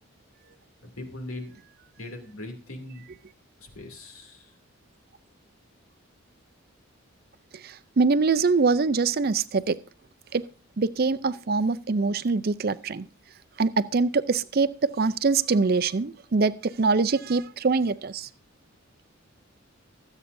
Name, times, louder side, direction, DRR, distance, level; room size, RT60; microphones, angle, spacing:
voice 1, 0.8-1.6 2.0-3.0 3.6-4.5, left 1 dB, 85° left, 2.7 m, -40 dB
voice 2, 7.6-9.8 10.3-10.5 10.8-13.1 13.6-18.3, right 4 dB, 45° right, 0.5 m, -24 dB
23.5 x 8.1 x 2.6 m
head